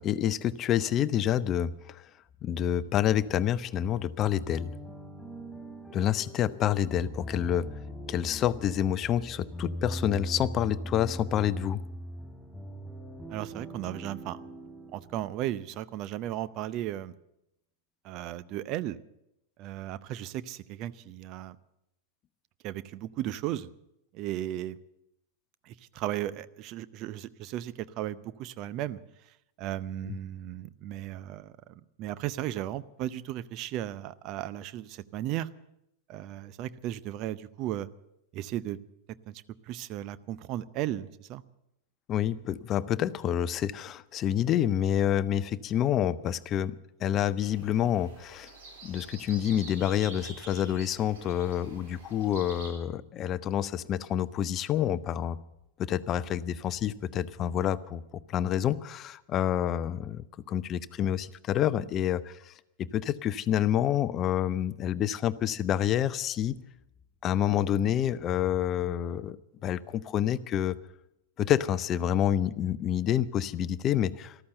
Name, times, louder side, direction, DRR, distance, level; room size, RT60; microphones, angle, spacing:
voice 1, 0.0-2.0 2.4-4.7 5.9-7.7 8.1-11.8 30.1-30.2 42.1-46.7 47.0-48.5 48.8-55.4 55.8-58.0 58.3-62.5 62.9-66.5 67.2-69.4 69.6-70.8 71.4-74.3, left 10 dB, 30° left, 16 dB, 0.6 m, -28 dB
sound 1, 4.2-15.9, equal, ahead, 7.0 m, -41 dB
voice 2, 13.3-14.4 14.9-17.1 18.0-19.0 19.6-21.6 22.6-23.7 24.1-24.8 25.6-35.5 36.1-37.9 38.3-38.8 39.3-41.4, right 13 dB, 40° right, 17 dB, 0.6 m, -35 dB
sound 2, 47.4-52.7, right 3 dB, 55° right, 3.9 m, -47 dB
14.0 x 13.0 x 7.9 m, 0.85 s
figure-of-eight pair, 90°, 0 cm